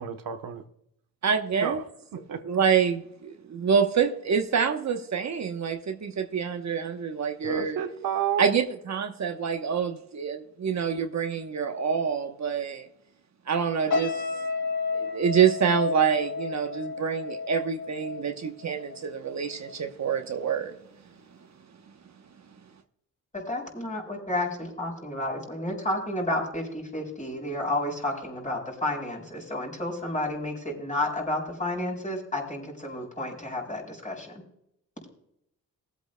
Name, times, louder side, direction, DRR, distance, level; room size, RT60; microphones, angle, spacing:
voice 1, 0.0-0.6 1.5-1.8 2.1-2.4 7.4-8.5, right 8 dB, 85° right, 1.0 m, -30 dB
voice 2, 1.2-1.8 2.4-7.8 8.4-12.9 13.5-14.2 14.9-20.7, right 7 dB, 55° right, 1.0 m, -26 dB
sound 1, 13.9-19.2 19.5-19.8, left 4 dB, 70° left, 2.0 m, -32 dB
voice 3, 23.3-34.4, left 1 dB, 20° left, 4.6 m, -31 dB
20.5 x 8.2 x 2.2 m
cardioid pair, 75°, 33 cm